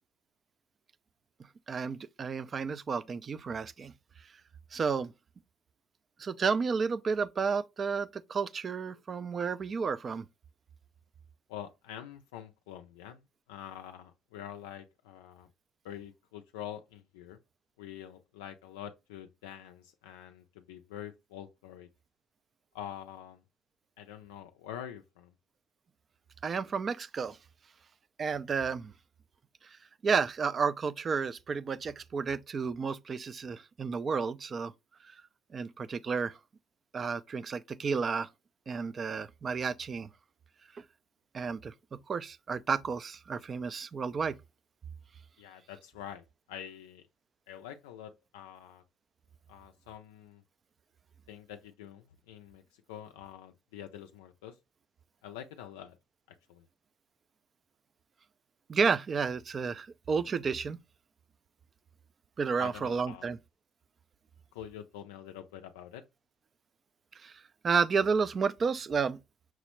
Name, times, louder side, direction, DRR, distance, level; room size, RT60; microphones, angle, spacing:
voice 1, 1.7-3.9 4.7-5.1 6.2-10.2 26.4-27.4 28.2-28.9 30.0-34.7 35.1-35.2 35.5-36.4 36.9-38.3 38.7-40.1 40.8-40.9 41.3-44.4 58.7-60.8 62.4-63.4 67.2-69.2, right 5 dB, 45° right, 0.3 m, -31 dB
voice 2, 11.5-13.2 13.5-15.5 15.8-17.4 17.8-21.9 22.7-23.4 24.0-25.3 45.4-47.1 47.5-48.8 49.5-50.4 51.3-54.6 55.2-56.0 56.3-56.7 62.6-63.3 64.5-66.0, left 10 dB, 90° left, 0.3 m, -46 dB
5.9 x 2.1 x 2.9 m
supercardioid pair, 65°, 0 cm